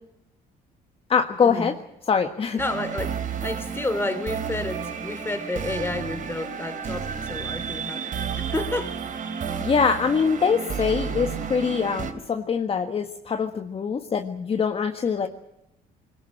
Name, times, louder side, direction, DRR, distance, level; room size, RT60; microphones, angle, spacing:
voice 1, 1.1-1.7 2.1-2.6 9.6-15.3, left 6 dB, 35° left, 5 dB, 1.5 m, -23 dB
voice 2, 2.5-9.0 10.9-11.0, left 2 dB, 15° left, 9 dB, 3.6 m, -30 dB
sound 1, 2.6-12.1, right 7 dB, 50° right, 3.3 m, -32 dB
22.5 x 18.5 x 8.8 m, 0.86 s
cardioid pair, 110°, 17 cm